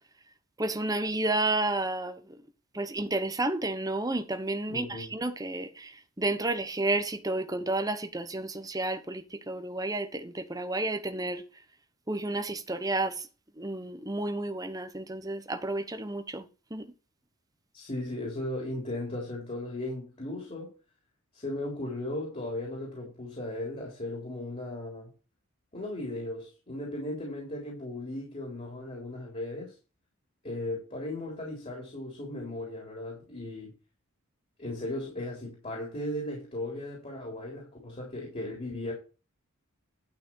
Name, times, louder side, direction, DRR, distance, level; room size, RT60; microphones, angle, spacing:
voice 1, 0.6-2.2 2.7-5.9 6.2-11.4 12.1-13.3 13.6-16.4 16.7-16.9, right 2 dB, 15° right, 1.2 m, -31 dB
voice 2, 4.7-5.1 17.7-20.7 21.3-25.1 25.7-29.8 30.4-33.7 34.6-38.9, left 1 dB, 30° left, 3.9 m, -36 dB
11.5 x 6.1 x 4.8 m
head